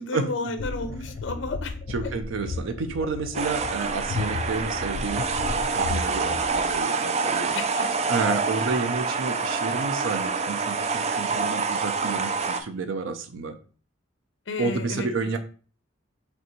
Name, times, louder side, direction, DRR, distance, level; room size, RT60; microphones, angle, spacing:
voice 1, 0.0-1.8 2.0-2.1 5.4-5.6 7.5-8.0 14.5-15.1, left 2 dB, 70° left, 8 dB, 0.7 m, -33 dB
sound 1, 0.6-6.8, left 3 dB, 50° left, 0.3 m, -34 dB
voice 2, 1.9-5.2 5.7-7.6 8.1-13.6 14.6-15.4, right 4 dB, 90° right, 7 dB, 0.5 m, -30 dB
sound 2, 3.3-12.6, right 4 dB, 35° right, 0.4 m, -27 dB
5.2 x 3.3 x 3.0 m, 0.38 s
head